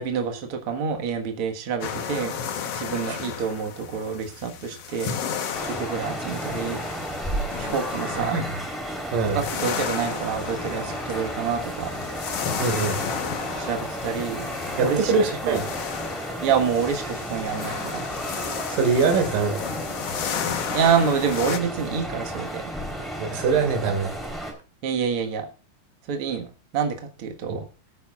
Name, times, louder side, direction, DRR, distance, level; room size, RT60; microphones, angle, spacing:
voice 1, 0.0-2.4 2.8-5.2 5.6-6.8 7.6-8.4 9.2-11.9 13.6-14.5 14.8-15.1 15.4-15.6 16.4-18.1 20.7-22.6 24.8-25.5 26.1-27.6, right 6 dB, 50° right, 3 dB, 2.0 m, -27 dB
sound 1, 1.8-21.6, left 7 dB, 60° left, 1.7 m, -33 dB
sound 2, 5.5-24.5, right 1 dB, ahead, 3.2 m, -33 dB
voice 2, 9.1-9.4 12.6-13.0 14.8-15.6 18.7-19.6 23.2-24.1 27.5-27.6, right 5 dB, 70° right, 5 dB, 3.6 m, -23 dB
20.0 x 8.9 x 2.4 m, 0.33 s
omnidirectional pair, 4.1 m